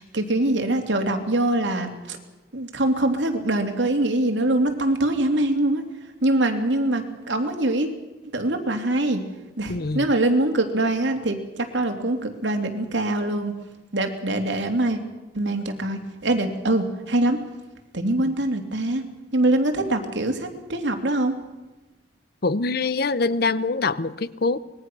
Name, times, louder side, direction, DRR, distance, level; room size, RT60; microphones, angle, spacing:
voice 1, 0.0-2.2 2.5-5.8 6.2-7.9 8.3-9.2 9.6-11.4 11.7-13.5 13.9-15.0 15.3-17.4 17.9-19.0 19.3-21.3, right 1 dB, 80° right, 5 dB, 2.9 m, -23 dB
voice 2, 9.7-10.1 22.4-24.6, left 3 dB, 60° left, 16 dB, 0.8 m, -24 dB
25.0 x 21.0 x 6.2 m, 1.1 s
head